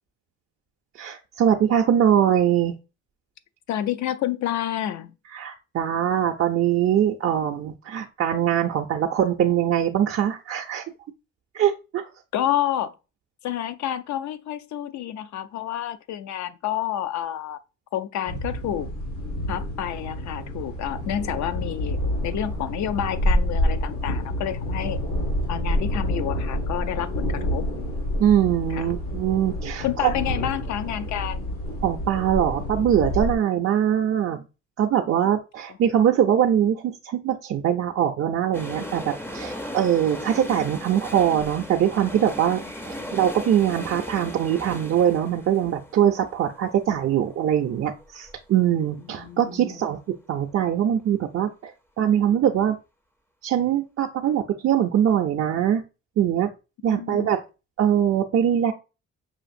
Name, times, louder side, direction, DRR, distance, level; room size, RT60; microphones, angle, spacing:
voice 1, 1.0-2.7 5.3-10.8 11.5-12.1 28.2-30.1 31.8-34.4 34.8-50.0 50.3-52.8 53.4-55.8 56.2-56.5 56.8-57.4 57.8-58.7, right 10 dB, 50° right, 0.5 m, -22 dB
voice 2, 3.7-5.1 12.3-12.9 13.4-17.6 17.9-18.9 19.5-25.0 25.5-27.7 28.7-28.9 29.8-31.4 49.1-49.8 56.9-57.3, left 11 dB, 70° left, 0.5 m, -29 dB
sound 1, 18.3-33.3, equal, 85° left, 1.7 m, -28 dB
sound 2, 38.5-48.3 48.6-48.7, left 1 dB, 10° left, 0.4 m, -37 dB
5.6 x 2.5 x 2.5 m
cardioid pair, 90°, 30 cm